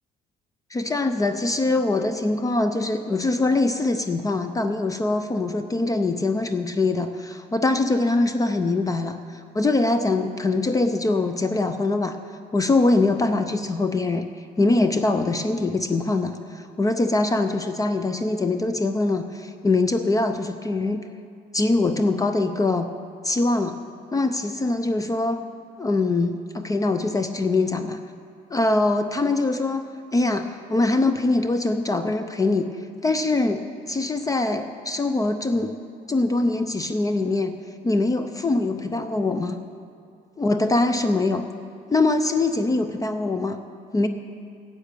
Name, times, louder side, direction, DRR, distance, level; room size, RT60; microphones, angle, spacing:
voice 1, 0.7-12.2 12.5-14.3 14.6-21.0 21.5-22.9 23.2-23.8 24.1-25.4 25.8-28.0 28.5-29.8 30.1-32.7 33.0-35.8 36.1-37.5 37.8-39.6 40.4-41.4 41.9-43.6 43.9-44.1, left 2 dB, 20° left, 9 dB, 0.5 m, -23 dB
10.0 x 7.5 x 8.9 m, 2.4 s
cardioid pair, 110°, 17 cm